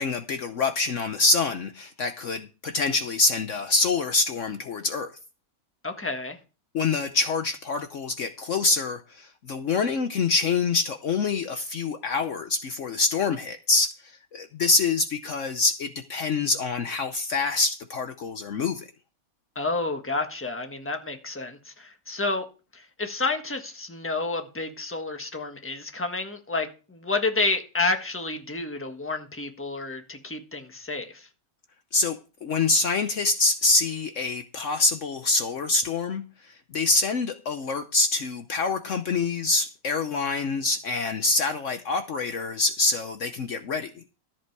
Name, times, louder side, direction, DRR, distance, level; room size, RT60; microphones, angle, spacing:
voice 1, 0.0-5.1 6.7-13.9 14.3-18.8 31.9-44.0, left 3 dB, 60° left, 1.1 m, -25 dB
voice 2, 5.8-6.4 19.5-22.4 22.7-31.3, left 3 dB, 10° left, 1.3 m, -30 dB
14.0 x 7.6 x 4.7 m
omnidirectional pair, 1.6 m